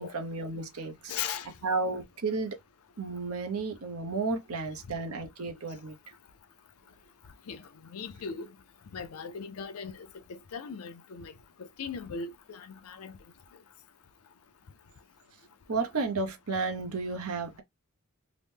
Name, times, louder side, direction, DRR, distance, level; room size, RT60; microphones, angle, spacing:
voice 1, 0.0-1.1 1.6-2.6 3.0-6.0 15.7-17.6, right 3 dB, 80° right, 0.8 m, -32 dB
voice 2, 1.1-1.5 7.5-7.6 7.9-8.5 8.9-11.3 11.8-13.1, left 6 dB, 85° left, 0.5 m, -38 dB
2.9 x 2.1 x 3.3 m
head